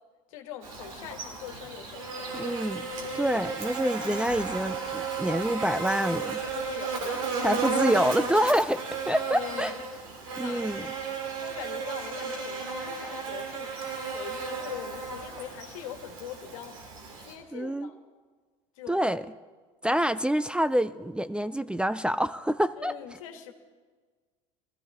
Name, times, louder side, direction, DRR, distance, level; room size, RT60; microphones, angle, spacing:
voice 1, 0.3-2.6 6.4-7.3 9.2-9.8 10.4-10.7 11.4-13.8 14.1-16.8 17.2-18.0 18.8-19.0 22.8-23.5, left 10 dB, 80° left, 5 dB, 1.6 m, -42 dB
Buzz, 0.6-17.3, right 4 dB, 85° right, 3.0 m, -34 dB
voice 2, 2.3-2.9 3.1-6.4 7.4-9.7 10.4-10.9 17.5-17.9 18.9-19.2 19.8-22.9, equal, 5° right, 14 dB, 0.4 m, -27 dB
20.0 x 14.5 x 3.6 m, 1.4 s
hypercardioid pair, 85°, 17 cm